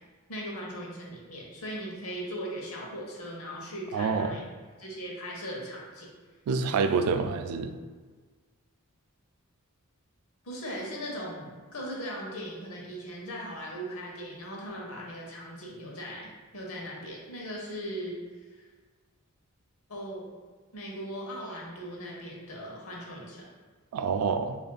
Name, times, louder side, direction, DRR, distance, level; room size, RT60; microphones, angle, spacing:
voice 1, 0.3-4.4 4.8-6.1 10.4-18.2 18.5-18.6 19.9-20.3 20.7-23.5, equal, 70° left, -2 dB, 0.9 m, -39 dB
voice 2, 3.9-4.4 6.5-7.7 23.9-24.6, right 5 dB, 85° right, 12 dB, 0.3 m, -27 dB
5.0 x 2.6 x 2.3 m, 1.4 s
head